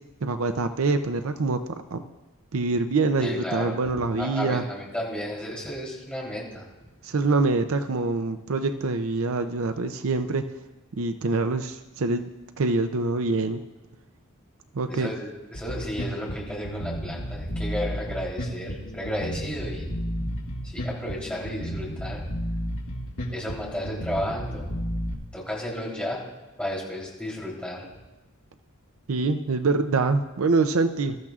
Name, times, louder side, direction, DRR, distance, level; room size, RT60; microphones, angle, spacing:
voice 1, 0.2-1.6 1.9-2.0 2.5-4.6 7.0-10.5 11.0-12.3 12.6-13.6 14.7-15.1 29.1-31.2, right 3 dB, 70° right, 9 dB, 0.6 m, -25 dB
voice 2, 3.2-3.8 4.2-6.6 14.9-20.2 20.6-22.2 23.3-24.6 25.3-26.2 26.6-27.8, equal, 5° left, -5 dB, 3.3 m, -33 dB
Bass guitar, 15.5-25.1, equal, 80° left, 2.1 m, -32 dB
21.0 x 13.5 x 2.4 m, 1.1 s
head